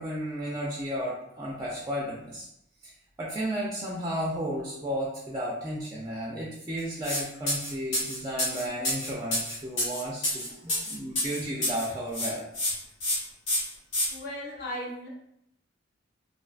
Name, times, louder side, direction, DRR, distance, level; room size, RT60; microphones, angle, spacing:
voice 1, 0.0-2.5 2.8-2.9 3.2-12.4, equal, 20° right, -4 dB, 0.3 m, -33 dB
sound 1, 7.0-7.2 7.5-11.9 12.1-12.7 13.0-13.2 13.5-14.1, left 1 dB, 80° left, 1.0 m, -28 dB
voice 2, 14.1-15.1, equal, 55° left, -4 dB, 0.8 m, -36 dB
2.5 x 2.2 x 2.4 m, 0.78 s
head